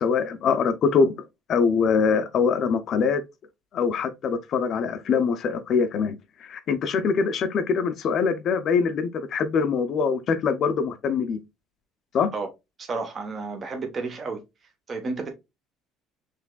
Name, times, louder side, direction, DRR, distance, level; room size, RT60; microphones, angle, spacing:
voice 1, 0.0-1.1 1.5-3.2 3.7-6.2 6.4-11.4 12.1-12.3, left 5 dB, 45° left, 0.5 m, -23 dB
voice 2, 12.8-14.4 14.9-15.3, right 3 dB, 30° right, 0.9 m, -31 dB
5.8 x 3.2 x 2.3 m
cardioid pair, 140°, 0 cm